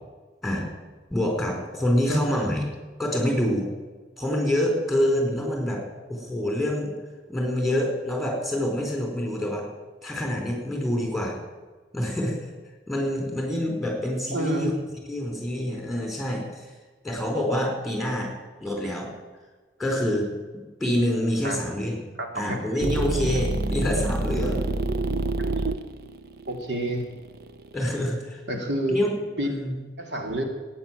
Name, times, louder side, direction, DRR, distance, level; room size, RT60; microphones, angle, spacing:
voice 1, 0.4-0.7 1.1-2.6 3.0-3.7 4.2-5.8 6.1-6.9 7.3-9.6 10.0-11.4 11.9-12.4 12.9-14.7 15.1-16.7 17.0-18.3 18.6-19.1 19.8-20.3 20.8-22.0 22.3-24.7 27.7-28.6 28.9-29.2 29.4-29.8, left 1 dB, ahead, 1 dB, 4.2 m, -26 dB
voice 2, 14.3-14.7 21.4-21.6 22.2-22.6 25.4-25.5 26.5-27.1 28.5-29.0 29.4-29.5 30.0-30.4, right 1 dB, 75° right, 3 dB, 2.7 m, -28 dB
sound 1, 22.8-27.9, right 2 dB, 60° right, 0.8 m, -27 dB
16.5 x 9.5 x 9.1 m, 1.3 s
head